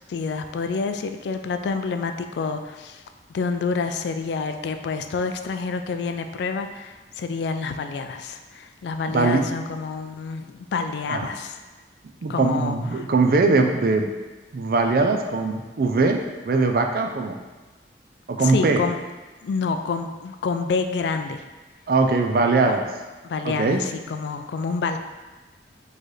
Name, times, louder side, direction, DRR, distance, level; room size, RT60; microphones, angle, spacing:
voice 1, 0.1-3.0 3.3-11.6 12.3-13.1 18.4-19.0 19.4-21.4 22.7-22.8 23.2-25.0, left 4 dB, 75° left, 7 dB, 0.3 m, -28 dB
voice 2, 12.2-14.1 14.5-17.4 18.3-18.8 21.9-22.8 23.4-23.8, right 3 dB, 55° right, 4 dB, 0.4 m, -21 dB
4.4 x 3.2 x 3.1 m, 1.2 s
head